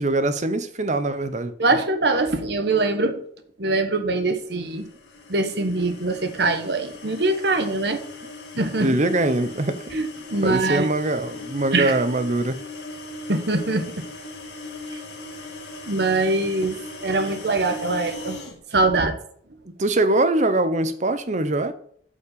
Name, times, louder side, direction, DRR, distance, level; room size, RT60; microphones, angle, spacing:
voice 1, 0.0-1.5 8.8-9.8 10.4-12.6 19.8-21.7, right 2 dB, 40° right, 0.9 m, -22 dB
voice 2, 1.6-3.2 3.6-4.9 5.3-8.0 8.5-9.0 9.9-10.9 11.7-11.9 13.3-14.0 14.9-15.0 15.9-18.4 18.7-19.2, right 2 dB, 65° right, 1.4 m, -23 dB
sound 1, 4.6-18.6, left 2 dB, 70° left, 2.3 m, -39 dB
8.4 x 5.4 x 6.9 m
head